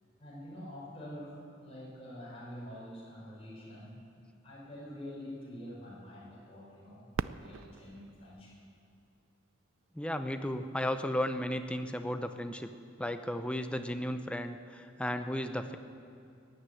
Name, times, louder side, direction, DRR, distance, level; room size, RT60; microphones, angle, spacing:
voice 1, 0.2-4.0 4.4-8.6, equal, 30° left, -6 dB, 5.1 m, -46 dB
Fireworks, 7.1-9.9 10.6-10.7 11.4-11.8 13.7-13.8, right 6 dB, 85° right, 0.4 m, -42 dB
voice 2, 9.9-12.7 13.0-15.8, left 1 dB, 5° left, 8 dB, 0.6 m, -34 dB
16.0 x 9.8 x 9.1 m, 2.4 s
head